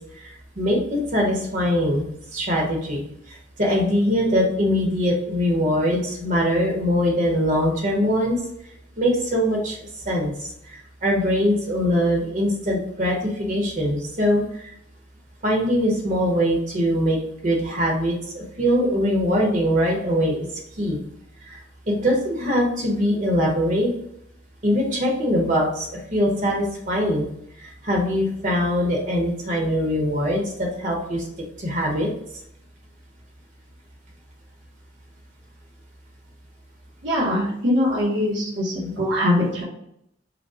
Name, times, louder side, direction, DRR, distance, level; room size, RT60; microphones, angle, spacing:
voice 1, 0.2-3.0 3.6-8.4 9.0-9.8 10.1-10.3 10.7-14.4 15.4-17.2 17.4-20.5 20.8-21.0 21.9-23.9 24.6-27.3 27.6-31.2 31.6-32.1, equal, 40° right, -1 dB, 1.0 m, -22 dB
voice 2, 37.0-39.6, left 1 dB, 65° right, -5 dB, 1.2 m, -22 dB
5.0 x 2.2 x 4.8 m, 0.75 s
head